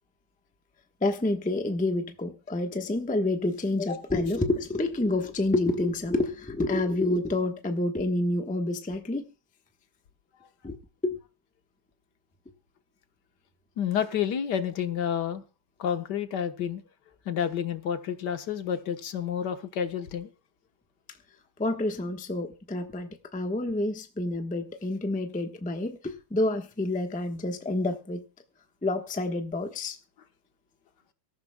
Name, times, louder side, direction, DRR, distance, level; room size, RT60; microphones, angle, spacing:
voice 1, 1.0-9.2 10.6-10.8 11.0-11.2 21.6-28.2 28.8-30.0, left 2 dB, 10° left, 0.5 m, -28 dB
voice 2, 13.8-15.4 15.8-16.8 17.2-20.3, left 8 dB, 55° left, 1.6 m, -29 dB
23.5 x 14.0 x 2.3 m
omnidirectional pair, 2.4 m